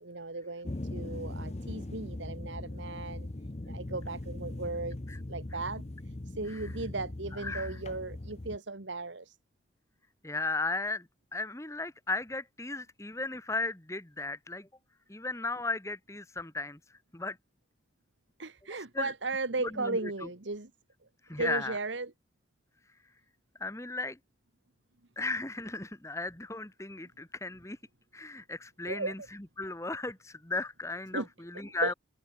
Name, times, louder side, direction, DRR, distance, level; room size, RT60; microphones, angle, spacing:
voice 1, 0.0-3.3 3.7-5.0 5.3-9.4 18.4-20.7 21.4-22.1 28.9-29.1 31.1-31.3 31.8-31.9, right 3 dB, 85° right, 1.8 m, -36 dB
sound 1, 0.6-8.6, left 1 dB, 35° left, 0.8 m, -40 dB
voice 2, 7.4-7.8 10.2-11.1 11.3-14.7 15.1-17.4 18.9-19.1 19.6-20.1 21.2-21.8 23.6-24.2 25.2-27.8 28.1-29.2 29.6-31.9, left 3 dB, 15° left, 1.5 m, -36 dB
head